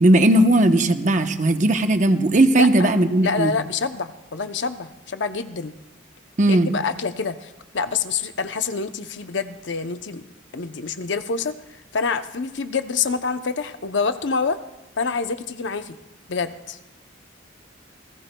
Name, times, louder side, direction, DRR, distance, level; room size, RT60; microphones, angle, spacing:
voice 1, 0.0-3.5 6.4-6.7, right 1 dB, 40° right, 7 dB, 0.9 m, -17 dB
voice 2, 2.6-2.9 3.2-5.7 6.5-10.2 10.5-11.6 11.9-14.6 15.0-16.0 16.3-16.8, left 5 dB, 65° left, 10 dB, 0.7 m, -26 dB
28.0 x 18.5 x 2.3 m, 1.1 s
head